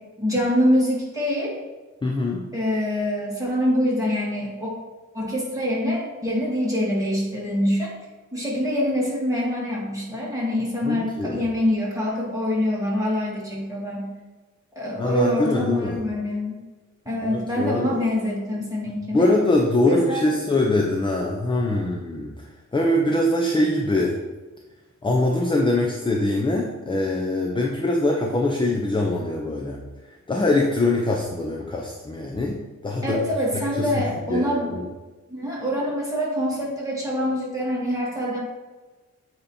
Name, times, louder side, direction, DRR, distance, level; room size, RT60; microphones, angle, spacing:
voice 1, 0.2-1.6 2.5-4.7 5.1-7.9 8.3-14.1 14.8-16.6 17.1-19.3 19.8-20.2 33.0-34.8 35.3-38.4, equal, 10° right, -5 dB, 1.9 m, -25 dB
voice 2, 2.0-2.4 10.8-11.5 15.0-16.0 17.2-18.0 19.1-22.3 22.7-24.2 25.0-29.8 30.3-32.6 32.8-33.2 33.7-34.0 34.3-34.8, left 2 dB, 15° left, -1 dB, 0.6 m, -23 dB
8.5 x 3.0 x 4.2 m, 1.3 s
wide cardioid pair, 135°, 30 cm